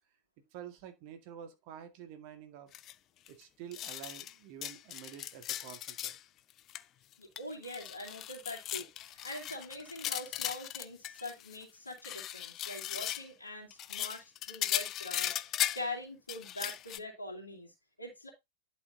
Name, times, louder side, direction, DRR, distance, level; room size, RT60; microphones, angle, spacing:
voice 1, 0.5-2.7 3.3-6.2, right 9 dB, 45° right, 1.9 m, -48 dB
sound 1, 2.7-2.9 3.3-3.4 3.7-4.3 4.6-6.2 6.5-6.8 7.1-11.6 11.9-13.3 13.7-15.9 16.3-17.0, left 12 dB, 35° left, 0.5 m, -38 dB
voice 2, 7.2-18.3, left 1 dB, 85° left, 2.5 m, -43 dB
11.0 x 5.7 x 2.8 m
figure-of-eight pair, 90°, 0 cm